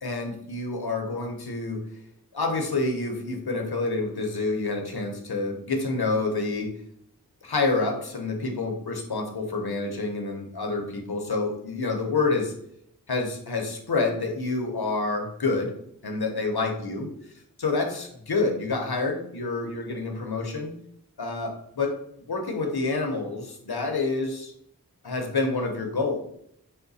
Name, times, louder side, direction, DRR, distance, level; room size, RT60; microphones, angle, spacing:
voice 1, 0.0-1.9 2.3-6.7 7.4-12.5 13.1-15.7 16.0-17.1 17.6-20.8 21.2-22.0 22.3-24.5 25.0-26.2, left 3 dB, 80° left, 3 dB, 0.9 m, -28 dB
5.8 x 2.2 x 4.0 m, 0.71 s
wide cardioid pair, 45°, 37 cm